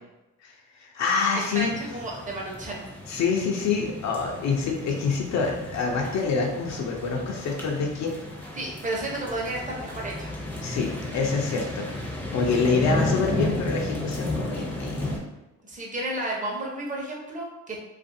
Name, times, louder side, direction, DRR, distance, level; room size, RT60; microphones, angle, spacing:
voice 1, 0.4-1.7 3.1-8.1 10.6-11.9 12.3-15.1, left 5 dB, 65° left, 0 dB, 0.5 m, -26 dB
sound 1, 1.5-15.2, left 1 dB, 5° left, 0.6 m, -33 dB
voice 2, 1.5-2.9 8.6-10.3 12.9-13.0 15.6-17.9, right 1 dB, 25° right, -2 dB, 0.8 m, -32 dB
2.5 x 2.4 x 2.6 m, 0.99 s
cardioid pair, 90°, 30 cm